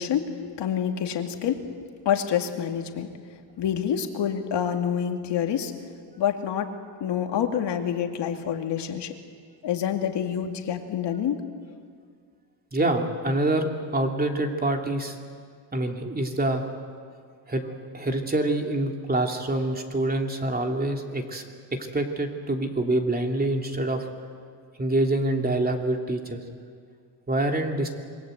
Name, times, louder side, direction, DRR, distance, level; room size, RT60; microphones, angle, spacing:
voice 1, 0.0-1.7 2.1-3.1 3.6-5.7 6.2-6.7 7.0-9.1 9.6-11.4, left 9 dB, 65° left, 4 dB, 2.5 m, -27 dB
voice 2, 12.7-15.2 15.7-16.6 17.5-17.7 17.9-21.4 21.9-24.1 24.8-26.4 27.3-27.9, right 1 dB, 20° right, 2 dB, 3.0 m, -26 dB
27.5 x 22.5 x 8.1 m, 2.1 s
cardioid pair, 115°, 45 cm